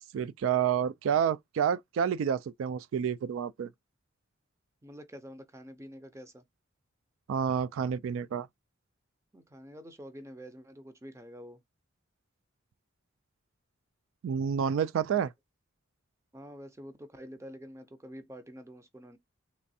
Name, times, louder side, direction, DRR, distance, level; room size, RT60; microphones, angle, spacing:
voice 1, 0.1-3.7 7.3-8.5 14.2-15.3, right 8 dB, 85° right, 0.3 m, -29 dB
voice 2, 4.8-6.4 9.3-11.6 16.3-19.2, equal, 15° right, 0.5 m, -47 dB
3.4 x 3.0 x 2.7 m
head